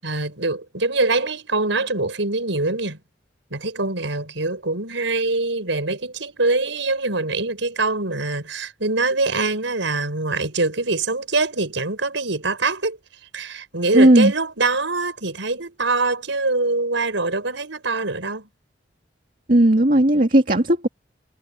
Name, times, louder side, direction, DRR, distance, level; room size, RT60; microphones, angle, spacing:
voice 1, 0.0-3.0 3.5-13.0 13.3-18.5, right 3 dB, 85° right, 5.7 m, -24 dB
voice 2, 13.9-14.3 19.5-20.9, right 1 dB, 45° right, 2.3 m, -15 dB
head